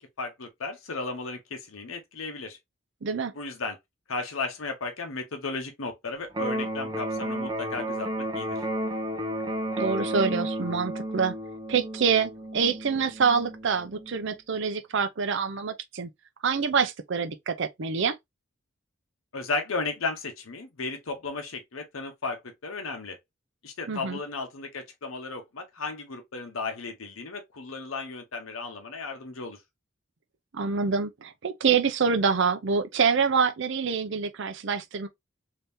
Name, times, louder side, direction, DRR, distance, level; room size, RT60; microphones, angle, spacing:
voice 1, 0.0-2.6 3.3-3.8 4.1-8.6 19.3-23.2 23.6-29.6, left 3 dB, 90° left, 0.8 m, -35 dB
voice 2, 3.0-3.3 9.8-11.3 11.7-16.1 16.4-18.2 23.9-24.2 30.5-35.1, right 5 dB, 65° right, 0.5 m, -26 dB
Electric guitar, 6.3-14.3, right 1 dB, 20° right, 0.7 m, -32 dB
3.5 x 2.8 x 2.6 m
head